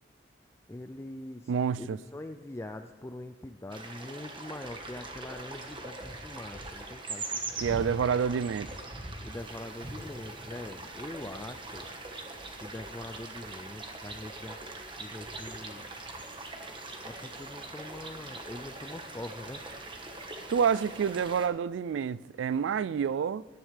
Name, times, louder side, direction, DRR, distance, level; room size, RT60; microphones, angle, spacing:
voice 1, 0.7-1.5 1.8-7.5 9.2-11.9 12.6-15.9 17.1-19.6, left 1 dB, 15° left, 0.4 m, -43 dB
voice 2, 1.5-2.0 7.6-8.7 20.5-23.5, right 7 dB, 90° right, 0.3 m, -28 dB
sound 1, 3.7-21.5, right 2 dB, 25° right, 1.4 m, -42 dB
17.5 x 11.0 x 3.4 m
head